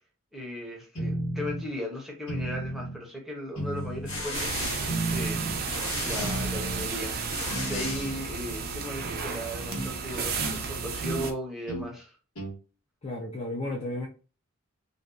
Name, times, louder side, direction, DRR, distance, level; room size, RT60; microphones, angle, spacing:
voice 1, 0.3-5.4 6.0-7.2 7.6-12.2, left 1 dB, ahead, 0.7 m, -37 dB
sound 1, 0.9-1.7 2.3-3.0 3.6-4.3 4.9-5.6 6.2-6.9 7.5-8.2 9.7-9.9 10.4-10.6 11.0-11.3 11.7-11.9 12.4-12.6, right 2 dB, 90° left, 1.3 m, -33 dB
sound 2, 3.8-8.7, left 2 dB, 65° left, 0.9 m, -37 dB
sound 3, 4.3-11.3, right 5 dB, 45° right, 0.4 m, -33 dB
voice 2, 13.0-14.1, left 1 dB, 30° left, 0.4 m, -33 dB
2.6 x 2.2 x 2.2 m
head